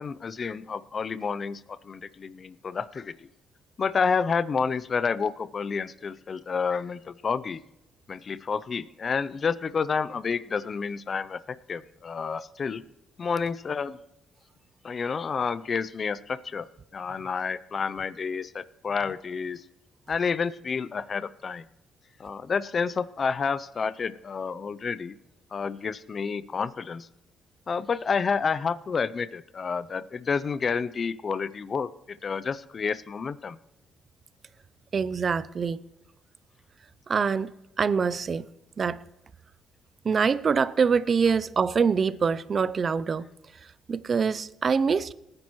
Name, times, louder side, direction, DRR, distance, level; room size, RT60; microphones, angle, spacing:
voice 1, 0.0-3.3 3.8-7.6 8.1-12.8 13.2-14.0 14.8-16.7 16.9-19.6 20.1-21.7 22.2-25.1 25.5-27.1 27.7-33.6, left 5 dB, 45° left, 0.5 m, -29 dB
voice 2, 34.9-35.8 37.1-37.5 37.8-38.5 38.8-39.0 40.0-43.3 43.9-45.1, right 5 dB, 45° right, 0.5 m, -24 dB
19.5 x 9.7 x 3.1 m
cardioid pair, 90°, 0 cm